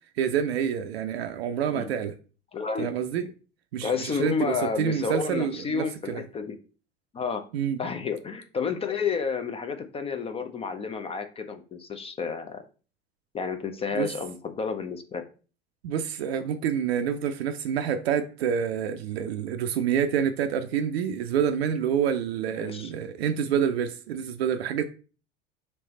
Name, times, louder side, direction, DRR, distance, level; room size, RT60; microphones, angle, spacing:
voice 1, 0.2-2.1 2.8-3.3 3.7-6.2 7.5-7.8 13.9-14.1 15.8-24.8, right 8 dB, 70° right, 0.5 m, -27 dB
voice 2, 2.5-2.9 3.2-3.3 3.8-6.6 7.1-7.4 7.8-12.6 13.3-15.2 22.6-22.9, left 5 dB, 20° left, 0.4 m, -31 dB
3.3 x 3.0 x 4.0 m
figure-of-eight pair, 75°, 32 cm